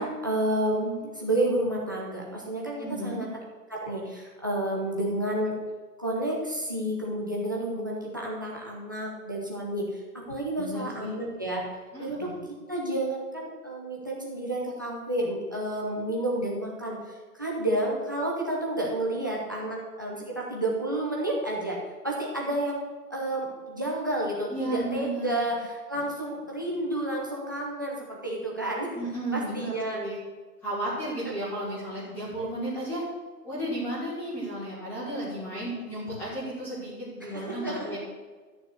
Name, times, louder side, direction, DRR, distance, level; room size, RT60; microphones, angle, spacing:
voice 1, 0.0-3.3 3.7-5.5 6.0-11.6 12.0-21.8 22.0-22.8 23.1-29.0 29.3-30.0 37.2-38.0, right 1 dB, 15° right, -4 dB, 0.7 m, -30 dB
voice 2, 2.8-3.2 10.6-11.1 11.9-12.4 24.5-25.5 28.9-30.2 30.6-33.0 33.4-38.0, right 1 dB, 5° left, -10 dB, 1.8 m, -33 dB
12.5 x 6.7 x 6.4 m, 1.3 s
hypercardioid pair, 170°, 48 cm